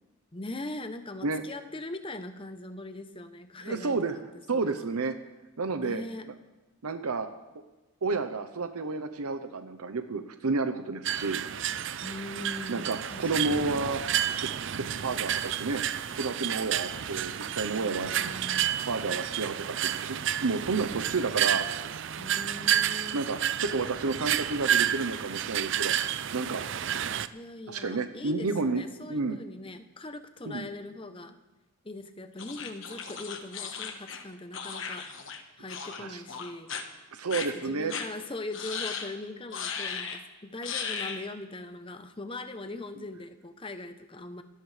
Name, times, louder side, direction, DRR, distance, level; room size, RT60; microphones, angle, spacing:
voice 1, 0.3-4.0 4.5-4.9 5.8-6.3 12.0-13.9 17.7-18.7 22.2-23.3 27.3-31.4 31.8-35.1 35.6-36.7 37.5-44.4, left 2 dB, 25° left, 9 dB, 0.8 m, -41 dB
voice 2, 3.6-4.1 4.5-5.1 5.6-6.0 6.8-7.3 8.0-11.4 12.7-14.0 14.4-14.5 14.8-15.8 16.2-18.1 18.9-21.7 23.1-25.9 26.3-26.6 27.7-28.8 29.1-29.4 30.5-30.7 36.0-36.2 37.1-37.9, right 3 dB, 85° right, 7 dB, 0.8 m, -31 dB
sound 1, 11.1-27.3, right 10 dB, 55° right, 0.5 m, -30 dB
sound 2, 32.4-35.4 35.7-36.0 36.3-36.8 37.3-37.5 37.9-38.1 38.5-39.1 39.5-40.2 40.6-41.2, left 6 dB, 60° left, 1.3 m, -36 dB
27.0 x 13.0 x 3.4 m, 1.1 s
head